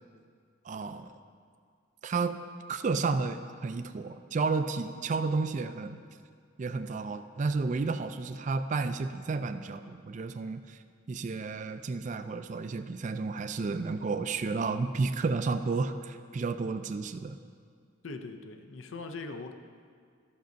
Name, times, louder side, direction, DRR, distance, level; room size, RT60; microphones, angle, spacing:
voice 1, 0.6-1.1 2.0-2.4 2.7-6.0 6.6-10.8 11.1-17.4, right 4 dB, 40° right, 9 dB, 0.3 m, -32 dB
voice 2, 18.0-19.5, left 3 dB, 75° left, 7 dB, 0.6 m, -41 dB
12.0 x 6.4 x 5.2 m, 2.1 s
head